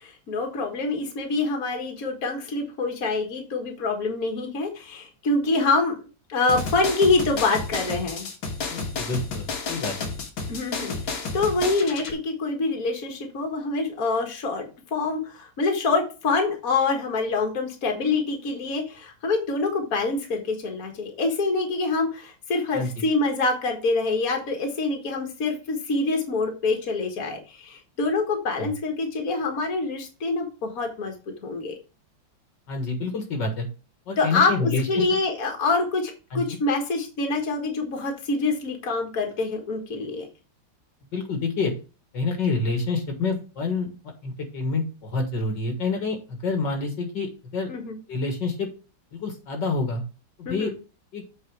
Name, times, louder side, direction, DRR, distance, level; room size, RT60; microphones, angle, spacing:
voice 1, 0.0-6.0 6.3-8.3 10.5-31.1 31.4-31.8 34.2-40.3 47.7-48.0 50.5-50.8, left 3 dB, 50° left, 3 dB, 2.0 m, -26 dB
sound 1, 6.5-12.1, left 4 dB, 85° left, 2.4 m, -31 dB
voice 2, 8.7-9.9 22.7-22.9 28.6-28.7 32.7-33.7 34.1-35.1 36.3-36.6 41.1-41.7 42.1-43.9 44.2-47.7 48.1-48.7 49.1-50.0 50.5-50.7 51.1-51.2, left 3 dB, 65° left, 4 dB, 2.3 m, -27 dB
8.1 x 4.8 x 4.7 m, 0.32 s
omnidirectional pair, 2.1 m